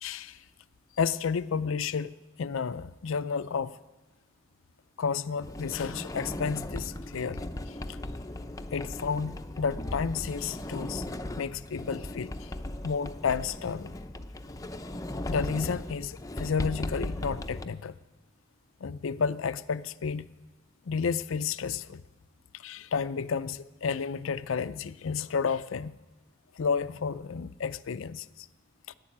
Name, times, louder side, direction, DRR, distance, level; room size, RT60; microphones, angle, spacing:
voice 1, 0.0-0.4 1.0-3.8 5.0-8.0 8.7-11.1 11.4-12.5 12.8-14.0 15.3-18.0 18.8-20.3 20.9-22.0 22.5-26.0 26.5-28.5 28.9-29.0, left 6 dB, 85° left, 0.5 m, -31 dB
Sliding door, 5.4-17.6, left 1 dB, 15° left, 0.7 m, -37 dB
15.0 x 10.5 x 8.6 m
head